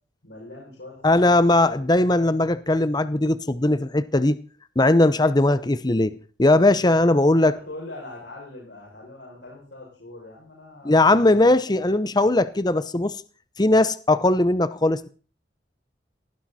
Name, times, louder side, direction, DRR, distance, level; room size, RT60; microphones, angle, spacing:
voice 1, 0.2-2.0 7.0-11.3 11.8-11.9, left 2 dB, 80° left, 6.7 m, -42 dB
voice 2, 1.0-4.4 4.8-6.1 6.4-7.5 10.8-13.2 13.6-15.1, left 2 dB, 25° left, 0.8 m, -19 dB
18.0 x 15.0 x 4.3 m
head